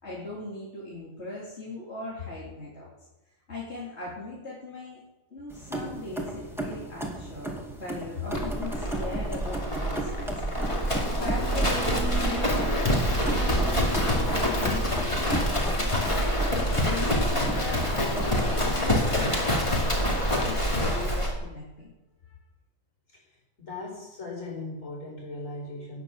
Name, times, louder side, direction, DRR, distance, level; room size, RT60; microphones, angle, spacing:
voice 1, 0.0-2.9 3.5-5.0 5.3-10.3 10.6-12.9 13.2-21.9, left 3 dB, 50° left, -7 dB, 3.6 m, -39 dB
sound 1, 5.5-18.9, right 1 dB, ahead, 2.2 m, -36 dB
Livestock farm animals working animals, 8.3-21.3, equal, 20° left, 2.5 m, -26 dB
sound 2, 10.6-15.2, right 5 dB, 80° right, 1.3 m, -39 dB
voice 2, 23.6-26.0, left 2 dB, 65° left, -2 dB, 5.5 m, -38 dB
18.0 x 6.8 x 7.3 m, 1.0 s
omnidirectional pair, 1.4 m